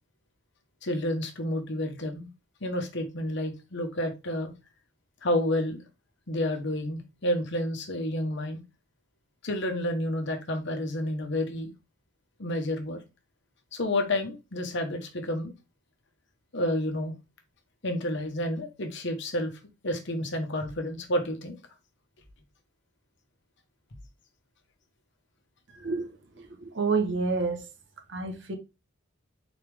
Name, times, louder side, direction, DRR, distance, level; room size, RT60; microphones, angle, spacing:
voice 1, 0.8-2.3 2.6-4.5 5.2-5.8 6.3-8.6 9.4-11.7 12.4-13.0 13.7-15.5 16.5-17.1 17.8-19.5 19.8-21.6, left 1 dB, 60° left, 1.1 m, -30 dB
voice 2, 25.7-26.1 26.4-27.7 28.1-28.6, right 4 dB, 60° right, 1.0 m, -29 dB
4.0 x 3.5 x 3.3 m
head